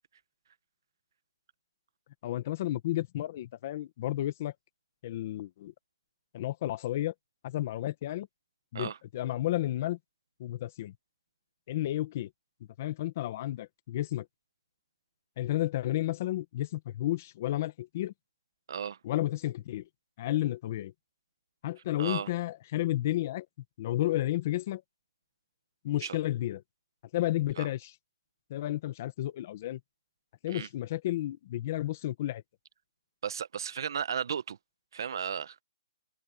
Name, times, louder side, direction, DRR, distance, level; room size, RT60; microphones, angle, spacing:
voice 1, 2.2-4.5 5.0-5.7 6.3-7.1 7.4-8.3 8.7-10.0 10.4-10.9 11.7-12.3 12.8-14.3 15.4-18.1 19.0-19.9 20.2-20.9 21.6-23.4 23.8-24.8 25.8-26.6 27.1-27.9 28.5-29.8 30.4-32.4, left 14 dB, 30° left, 1.6 m, -32 dB
voice 2, 22.0-22.3 26.0-26.2 27.6-27.7 30.5-30.7 33.2-34.6 34.9-35.6, right 7 dB, 50° right, 1.2 m, -34 dB
hypercardioid pair, 170°, 3 cm